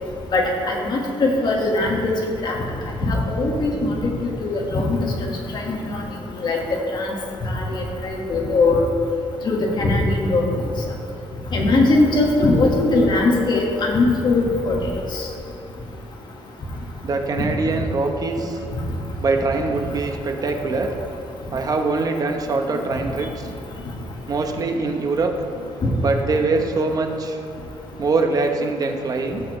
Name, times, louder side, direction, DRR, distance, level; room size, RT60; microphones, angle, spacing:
voice 1, 0.3-2.1 2.4-2.6 3.0-3.9 4.4-6.0 6.4-7.1 7.5-8.9 9.5-10.4 11.5-14.8 15.1-15.2, left 2 dB, 45° left, -1 dB, 1.8 m, -20 dB
voice 2, 17.0-18.6 19.2-20.9 21.5-23.5 24.3-25.3 25.9-27.4 28.0-29.4, right 3 dB, 35° right, 4 dB, 1.0 m, -23 dB
15.0 x 6.9 x 3.2 m, 2.6 s
cardioid pair, 130°, 11 cm